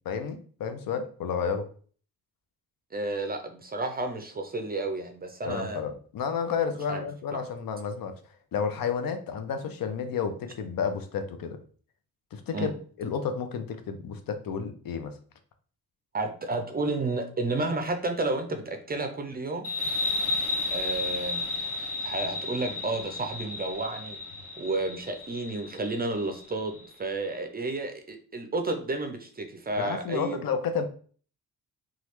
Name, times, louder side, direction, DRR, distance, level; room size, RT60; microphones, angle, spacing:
voice 1, 0.1-1.7 5.4-8.1 8.5-11.6 12.3-12.7 13.0-15.1 29.8-30.9, left 6 dB, 65° left, 8 dB, 0.6 m, -31 dB
voice 2, 2.9-5.8 6.9-7.0 12.5-12.7 16.1-19.6 20.7-21.5 22.0-24.2 24.6-30.4, right 2 dB, 25° right, 5 dB, 0.5 m, -31 dB
sound 1, 19.6-26.8, left 3 dB, 5° right, 1.0 m, -33 dB
3.1 x 2.4 x 2.9 m, 0.44 s
cardioid pair, 95°, 37 cm